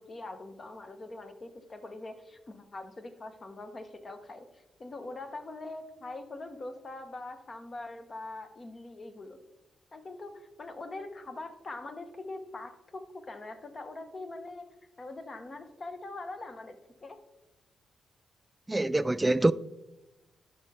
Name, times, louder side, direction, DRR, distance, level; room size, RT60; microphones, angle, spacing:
voice 1, 0.0-9.4 9.9-14.7 15.0-17.2, left 2 dB, 40° left, 1.0 m, -43 dB
voice 2, 18.7-19.5, right 2 dB, 15° right, 0.3 m, -25 dB
11.5 x 5.6 x 3.3 m
cardioid pair, 70°, 0 cm